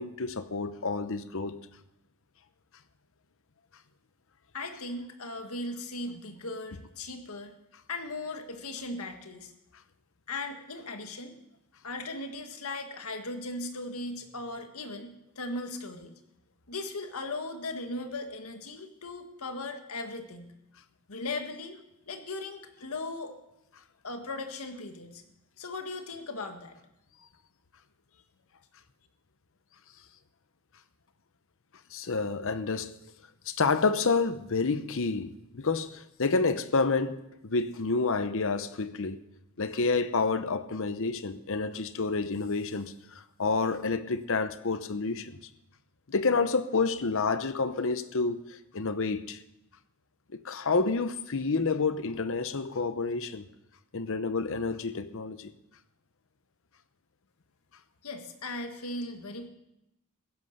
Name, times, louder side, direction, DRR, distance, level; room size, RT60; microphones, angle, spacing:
voice 1, 0.0-1.6 31.9-32.9 33.5-39.2 39.6-45.4 46.1-49.4 50.3-53.5 53.9-55.5, left 4 dB, 65° left, 0.9 m, -29 dB
voice 2, 4.5-7.6 7.9-9.5 10.3-11.3 11.8-16.1 16.7-20.5 21.1-21.7 22.1-23.3 24.0-25.2 25.6-26.8 58.0-59.5, left 2 dB, 80° left, 1.8 m, -38 dB
15.5 x 11.0 x 6.6 m
head